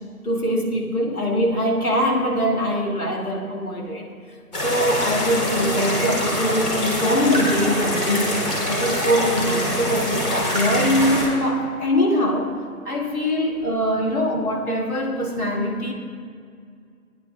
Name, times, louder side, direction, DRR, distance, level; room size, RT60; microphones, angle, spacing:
voice 1, 0.2-4.1 4.6-8.4 8.7-12.5 12.8-15.9, equal, 70° left, -1 dB, 2.3 m, -22 dB
sound 1, 4.5-11.3, left 1 dB, 25° left, 2.8 m, -24 dB
21.0 x 10.5 x 2.3 m, 2.2 s
figure-of-eight pair, 170°, 45 cm